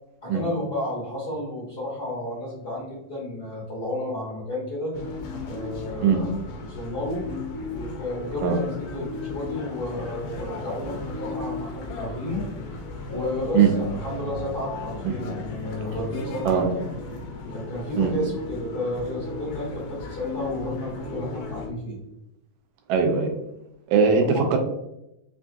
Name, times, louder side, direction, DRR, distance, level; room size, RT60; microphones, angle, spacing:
voice 1, 0.2-4.9 5.4-6.3 6.6-7.2 7.7-12.4 13.1-16.8 17.5-21.9 24.3-24.5, left 1 dB, 45° left, -9 dB, 1.4 m, -32 dB
sound 1, 4.9-21.7, left 3 dB, 80° left, 2.1 m, -35 dB
voice 2, 22.9-23.3 23.9-24.6, right 6 dB, 85° right, 4 dB, 2.2 m, -20 dB
5.6 x 2.3 x 2.5 m, 0.87 s
omnidirectional pair, 3.7 m